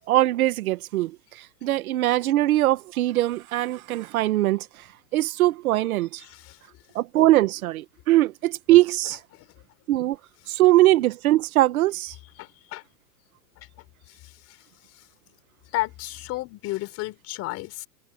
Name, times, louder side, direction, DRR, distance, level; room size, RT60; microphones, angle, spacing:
voice 1, 0.1-4.7 5.1-6.2 6.9-9.2 9.9-10.2 10.5-12.1, right 16 dB, 60° right, 1.6 m, -21 dB
voice 2, 6.2-6.6 9.3-9.5 12.4-12.8 13.6-13.7 15.7-17.9, left 18 dB, 30° left, 5.2 m, -32 dB
supercardioid pair, 155°, 49 cm